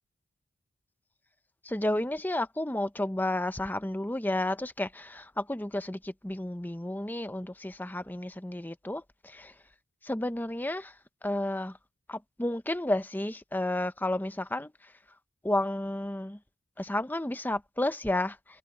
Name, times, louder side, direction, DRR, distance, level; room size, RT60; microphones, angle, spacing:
voice 1, 1.6-9.5 10.0-10.9 11.2-11.8 12.1-14.7 15.4-16.4 16.8-18.4, left 1 dB, 10° left, 0.7 m, -31 dB
head